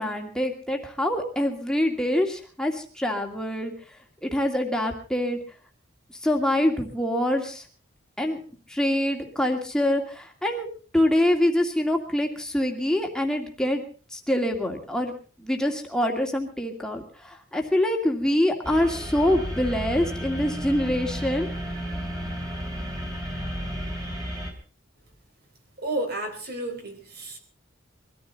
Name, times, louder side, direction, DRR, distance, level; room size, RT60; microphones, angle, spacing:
voice 1, 0.0-4.0 4.2-5.4 6.2-7.7 8.2-8.4 8.7-10.7 10.9-13.8 14.1-15.1 15.4-21.5, left 1 dB, 5° left, 2 dB, 2.3 m, -25 dB
sound 1, 18.6-24.5, equal, 20° right, 3.6 m, -32 dB
voice 2, 25.8-27.4, right 1 dB, 50° right, 4 dB, 4.0 m, -31 dB
22.5 x 14.0 x 4.0 m, 0.39 s
head